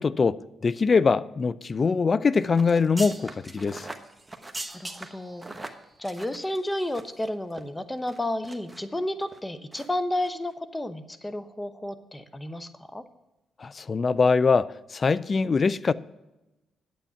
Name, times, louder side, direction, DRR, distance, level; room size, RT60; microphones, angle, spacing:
voice 1, 0.0-3.9 13.6-15.9, left 4 dB, 45° left, 0.4 m, -23 dB
sound 1, 2.5-7.2 7.5-7.6 8.1-8.8 9.2-9.4 9.7-9.9 10.2-10.3, right 2 dB, 20° right, 1.1 m, -40 dB
voice 2, 4.7-13.0, left 1 dB, 15° left, 0.9 m, -32 dB
9.2 x 8.2 x 5.7 m
supercardioid pair, 50°, 0 cm